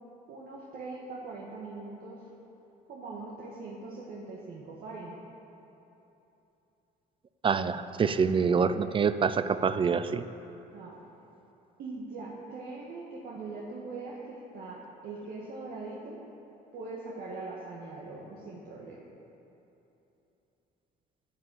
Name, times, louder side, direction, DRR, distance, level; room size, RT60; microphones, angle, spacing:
voice 1, 0.3-2.2 2.9-5.2 10.7-11.1 11.8-16.2 16.7-19.0, right 3 dB, 60° right, -4 dB, 1.8 m, -41 dB
voice 2, 7.4-10.2, right 6 dB, 30° right, 12 dB, 0.5 m, -26 dB
11.0 x 10.0 x 7.7 m, 3.0 s
cardioid pair, 110°, 17 cm